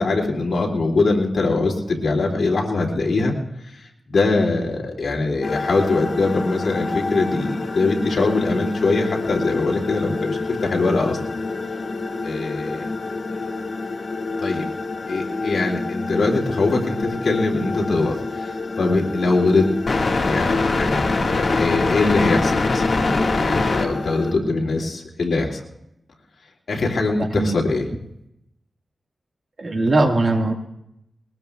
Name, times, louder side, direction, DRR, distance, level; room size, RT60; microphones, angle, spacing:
voice 1, 0.0-3.3 3.7-3.8 4.1-11.2 12.2-12.9 14.4-14.7 15.1-19.6 20.2-22.9 23.4-25.6 26.7-27.9, left 3 dB, 80° left, -1 dB, 2.4 m, -22 dB
sound 1, 5.4-24.3, left 3 dB, 60° left, 1.7 m, -25 dB
voice 2, 27.2-27.6 29.6-30.5, right 2 dB, 50° right, 3 dB, 1.6 m, -20 dB
21.5 x 20.0 x 2.3 m, 0.81 s
wide cardioid pair, 110°, 0 cm